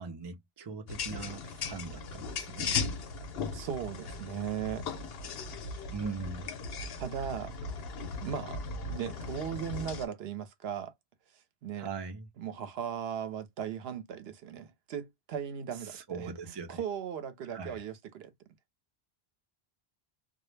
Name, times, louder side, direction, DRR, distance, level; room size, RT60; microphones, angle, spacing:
voice 1, 0.0-3.0 5.9-6.5 11.8-12.3 15.8-16.8 17.5-17.8, right 5 dB, 35° right, 0.4 m, -41 dB
sound 1, 0.9-10.1, left 4 dB, 70° left, 0.8 m, -37 dB
voice 2, 3.5-4.9 7.0-7.5 8.2-8.6 8.9-10.9 11.6-11.9 12.4-16.3 16.7-18.3, right 8 dB, 75° right, 0.8 m, -37 dB
2.2 x 2.0 x 3.1 m
omnidirectional pair, 1.1 m